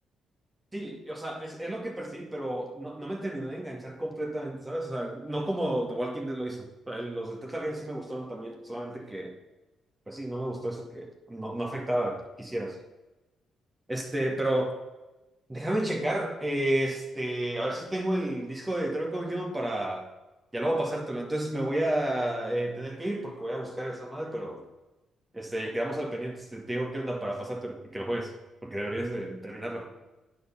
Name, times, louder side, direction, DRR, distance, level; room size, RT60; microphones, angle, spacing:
voice 1, 0.7-9.3 10.1-12.8 13.9-14.8 15.5-20.1 20.5-24.6 25.3-28.3 28.6-29.9, right 1 dB, 20° right, 0 dB, 2.1 m, -31 dB
9.3 x 4.6 x 5.7 m, 1.0 s
hypercardioid pair, 45°, 0 cm